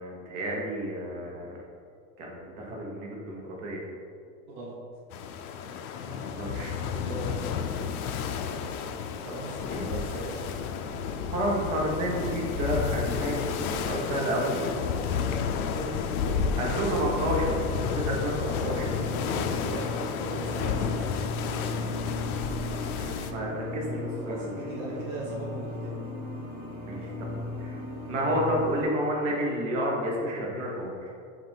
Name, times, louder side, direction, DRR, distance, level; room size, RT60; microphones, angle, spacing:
voice 1, 0.0-1.6 2.2-3.8 6.1-6.7 9.2-9.4 9.7-10.0 11.3-14.6 16.6-17.6 17.9-18.9 22.9-24.4 24.9-25.0 26.8-27.3 27.6-27.8 28.1-31.1, equal, 60° right, -2 dB, 1.2 m, -30 dB
sound 1, 5.1-23.3, left 6 dB, 85° left, 0.5 m, -31 dB
voice 2, 6.9-7.4 9.3-10.5 14.7-16.6 17.4-21.1 21.4-21.8 23.2-23.4 24.2-26.0, right 1 dB, 35° right, -6 dB, 0.5 m, -39 dB
sound 2, 18.7-28.8, left 2 dB, 15° right, 1.3 m, -36 dB
5.7 x 2.6 x 3.5 m, 2.3 s
supercardioid pair, 180°, 43 cm